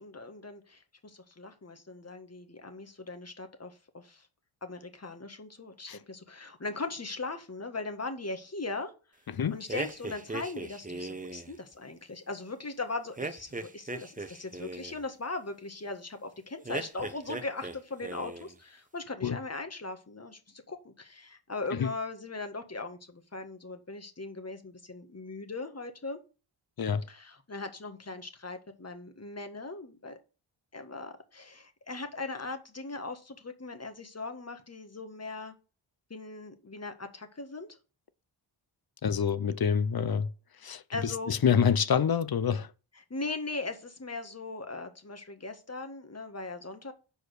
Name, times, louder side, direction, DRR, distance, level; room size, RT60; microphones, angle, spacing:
voice 1, 0.0-4.2 4.6-8.9 9.5-26.2 27.1-30.2 30.7-35.5 36.1-37.7 40.9-41.3 42.9-46.9, left 3 dB, 30° left, 1.7 m, -39 dB
sound 1, 9.7-11.5 13.2-15.0 16.6-17.8 18.0-18.5, right 2 dB, 15° right, 0.9 m, -38 dB
voice 2, 39.0-40.3 40.6-42.7, left 7 dB, 45° left, 0.8 m, -27 dB
6.8 x 4.7 x 6.4 m
cardioid pair, 50°, 50 cm